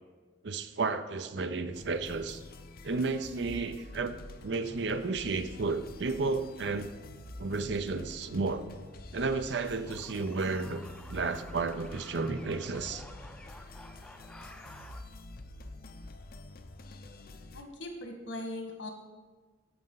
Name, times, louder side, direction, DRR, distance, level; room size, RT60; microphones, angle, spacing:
voice 1, 0.4-2.4 2.8-4.2 4.4-6.9 7.4-8.7 9.1-10.8 11.1-13.0, right 4 dB, 65° right, 10 dB, 0.6 m, -32 dB
sound 1, 1.7-17.6, left 2 dB, 50° left, 0.6 m, -48 dB
sound 2, 9.9-15.0, left 1 dB, 5° left, 0.5 m, -51 dB
voice 2, 17.5-18.9, left 1 dB, 75° left, 3 dB, 1.6 m, -40 dB
14.5 x 5.4 x 3.9 m, 1.3 s
head